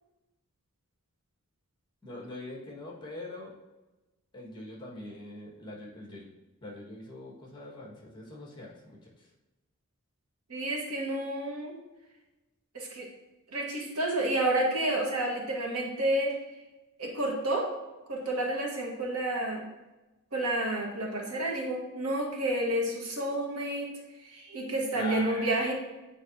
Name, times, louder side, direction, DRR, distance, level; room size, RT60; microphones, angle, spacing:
voice 1, 2.0-3.5 4.3-6.3 6.6-9.1 24.9-25.7, left 2 dB, 20° left, -3 dB, 1.7 m, -43 dB
voice 2, 10.5-11.7 12.7-13.1 13.5-16.3 17.0-17.7 18.1-19.6 20.3-23.9 24.3-25.7, right 1 dB, 85° right, 0 dB, 1.4 m, -30 dB
8.8 x 4.8 x 2.8 m, 1.1 s
head